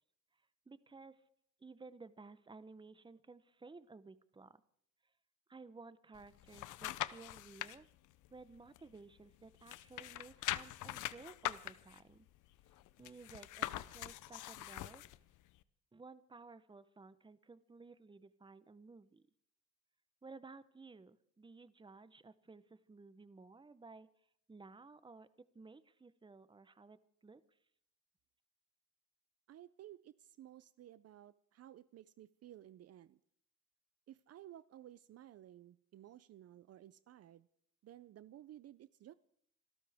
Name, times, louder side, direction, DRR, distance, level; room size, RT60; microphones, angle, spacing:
voice 1, 0.7-1.2 1.6-4.6 5.5-7.9 8.3-12.3 13.0-15.0 15.9-19.2 20.2-24.1 24.5-27.0 27.2-27.4, right 3 dB, 15° right, 15 dB, 0.8 m, -56 dB
sound 1, 6.1-7.8 8.2-9.3 9.6-15.2 15.6-15.7, left 15 dB, 80° left, 0.7 m, -43 dB
voice 2, 29.5-33.2 34.1-37.5 37.8-39.1, right 12 dB, 55° right, 16 dB, 0.5 m, -56 dB
26.5 x 13.0 x 3.5 m, 0.69 s
cardioid pair, 90°, 30 cm